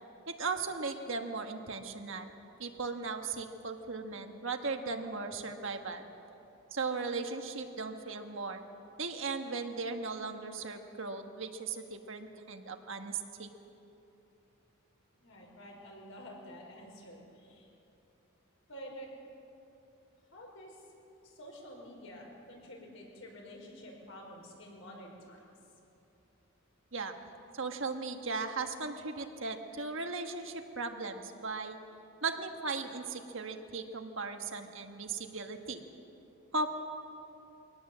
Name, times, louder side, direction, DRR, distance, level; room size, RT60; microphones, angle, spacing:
voice 1, 0.3-2.3 2.6-6.0 6.7-8.6 9.0-13.5 26.9-27.1 27.5-31.8 32.2-35.8 36.5-36.7, right 4 dB, 60° right, 5 dB, 1.5 m, -37 dB
voice 2, 15.2-17.7 18.7-19.1 20.3-20.8 21.2-25.5, equal, 65° left, -1 dB, 5.4 m, -49 dB
23.5 x 18.5 x 7.5 m, 2.8 s
head